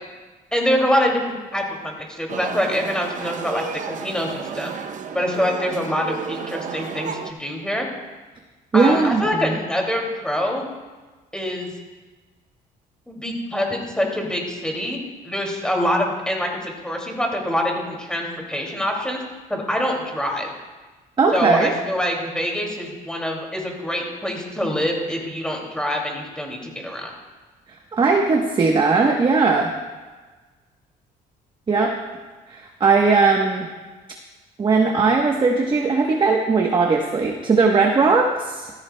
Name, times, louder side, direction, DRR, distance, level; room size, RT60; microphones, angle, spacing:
voice 1, 0.5-4.7 5.1-7.9 8.7-10.7 11.3-11.7 13.1-15.0 15.2-19.2 19.5-20.5 21.3-27.1, equal, 5° left, 0 dB, 2.3 m, -25 dB
sound 1, 2.3-7.3, right 6 dB, 50° right, 0.7 m, -32 dB
voice 2, 8.7-9.5 21.2-21.7 27.9-29.7 31.7-31.9 32.5-33.7 34.6-38.7, right 4 dB, 30° right, 2 dB, 1.0 m, -18 dB
14.5 x 13.5 x 2.2 m, 1.3 s
cardioid pair, 110°, 17 cm